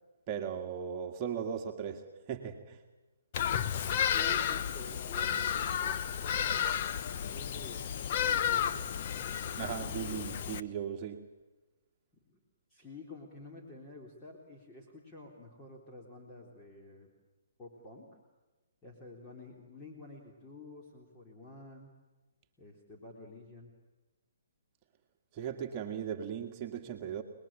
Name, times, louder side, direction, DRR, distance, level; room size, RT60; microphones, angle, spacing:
voice 1, 0.3-2.8 9.6-11.2 25.3-27.2, right 8 dB, 30° right, 1.8 m, -37 dB
Bird vocalization bird call bird song, 3.3-10.6, left 9 dB, 45° left, 1.0 m, -32 dB
voice 2, 4.1-6.7 7.1-10.3 12.3-12.4 12.7-17.1 17.6-18.1 18.8-21.9 22.6-23.7, left 2 dB, 15° left, 3.8 m, -50 dB
29.0 x 20.5 x 8.9 m
hypercardioid pair, 140°, 0 cm